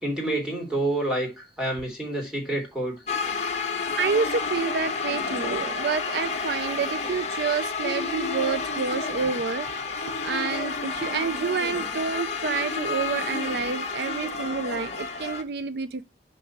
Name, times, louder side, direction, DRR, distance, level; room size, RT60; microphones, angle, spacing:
voice 1, 0.0-3.0, right 1 dB, 5° right, 2.9 m, -28 dB
sound 1, 3.1-15.4, left 4 dB, 40° left, 1.4 m, -30 dB
voice 2, 3.7-16.0, right 5 dB, 60° right, 0.4 m, -29 dB
5.6 x 5.5 x 5.9 m
head